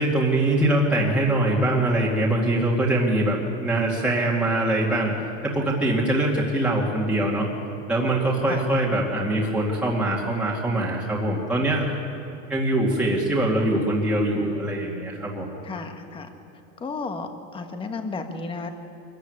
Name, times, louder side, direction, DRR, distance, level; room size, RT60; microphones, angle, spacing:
voice 1, 0.0-5.1 5.4-7.5 7.9-11.9 12.5-15.5, right 1 dB, 5° right, -5 dB, 2.2 m, -23 dB
voice 2, 15.6-16.3 16.8-18.7, left 4 dB, 15° left, 6 dB, 1.3 m, -33 dB
23.5 x 14.5 x 9.7 m, 2.9 s
supercardioid pair, 170°, 37 cm